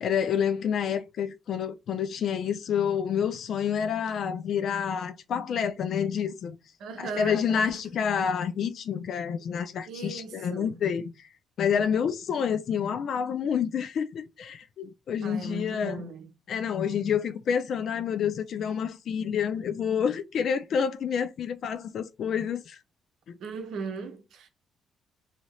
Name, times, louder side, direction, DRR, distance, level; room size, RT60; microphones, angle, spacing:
voice 1, 0.0-6.6 7.0-11.0 11.6-16.0 16.5-22.8 23.3-23.4, left 7 dB, 65° left, 0.5 m, -28 dB
voice 2, 6.8-7.9 9.9-10.8 15.2-16.3 23.4-24.5, right 4 dB, 75° right, 0.7 m, -38 dB
2.8 x 2.8 x 3.1 m
cardioid pair, 90°, 0 cm